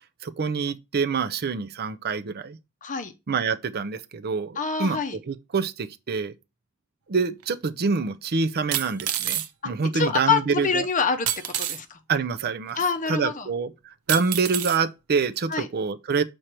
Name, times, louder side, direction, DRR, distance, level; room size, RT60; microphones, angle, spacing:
voice 1, 0.2-2.6 3.3-6.3 7.1-10.9 12.1-12.8 13.1-16.2, right 5 dB, 45° right, 0.5 m, -26 dB
voice 2, 2.8-3.1 4.6-5.2 9.6-12.0 12.8-13.5 15.5-15.7, left 5 dB, 35° left, 0.7 m, -26 dB
sound 1, 7.4-7.5 8.7-9.5 11.3-11.8 12.8-12.9 14.1-14.8 15.5-15.6, right 11 dB, 85° right, 0.7 m, -28 dB
6.4 x 4.4 x 4.5 m
head